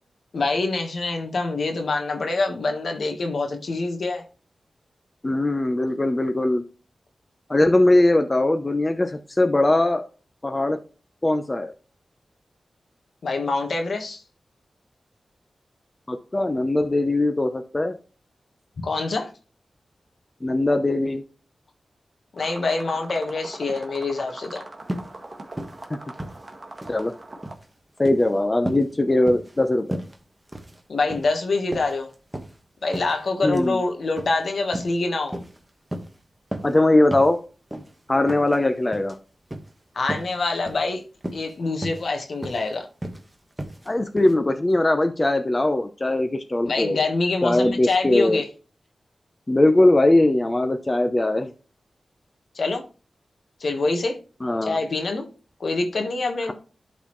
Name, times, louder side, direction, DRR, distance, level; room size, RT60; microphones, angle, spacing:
voice 1, 0.3-4.2 13.2-14.2 18.8-19.3 22.3-24.7 30.9-32.1 32.8-35.4 39.9-41.0 41.3-42.9 46.6-48.5 52.5-52.8 53.6-54.2 54.6-55.3 55.6-56.5, left 3 dB, 70° left, 1.4 m, -25 dB
voice 2, 5.2-6.6 7.5-10.1 10.4-10.8 11.2-11.7 16.1-17.9 20.4-21.2 26.9-27.1 28.0-30.0 33.4-33.8 36.6-37.4 38.1-39.2 43.9-47.0 47.4-48.4 49.5-51.5 54.4-54.8, left 1 dB, 25° left, 0.7 m, -20 dB
sound 1, 22.4-27.5, right 2 dB, 40° right, 1.8 m, -41 dB
sound 2, 24.9-25.1 25.5-25.8 26.1-27.0 27.3-27.6 28.0-28.3 28.7-28.9 29.3-29.6 29.9-30.2 30.5-30.8 31.1-31.4 31.7-32.6 32.9-33.1 33.5-33.7 34.2-34.4 34.7-35.0 35.3-35.6 35.9-36.1 36.5-36.8 37.1-37.3 37.7-37.9 38.3-38.6 38.9-39.1 39.5-39.7 40.1-40.4 40.7-40.8 41.2-41.5 41.8-42.1 42.4-42.7 43.0-43.2 43.6-43.9 44.2-44.3, right 1 dB, 15° right, 1.3 m, -33 dB
12.0 x 4.0 x 3.1 m
wide cardioid pair, 70°, 0 cm